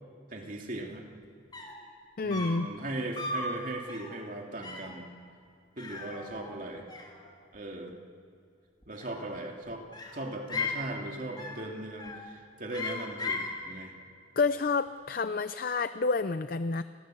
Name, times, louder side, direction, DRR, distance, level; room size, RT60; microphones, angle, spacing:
voice 1, 0.3-1.0 2.2-5.1 5.8-6.9 7.5-8.0 8.9-9.8 10.1-13.9, right 1 dB, 45° right, 1 dB, 3.1 m, -38 dB
sound 1, 1.2-1.3 1.5-1.9 2.3-2.7 3.2-3.5 3.9-4.2 4.6-5.0 5.8-6.6 6.9-7.6 8.8-9.5 9.9-10.9 11.4-11.7 12.0-12.3 12.7-13.5, left 3 dB, 25° left, 3.2 m, -37 dB
voice 2, 2.2-2.7 14.4-16.8, left 4 dB, 50° left, 12 dB, 0.6 m, -29 dB
29.5 x 22.0 x 8.0 m, 2.4 s
head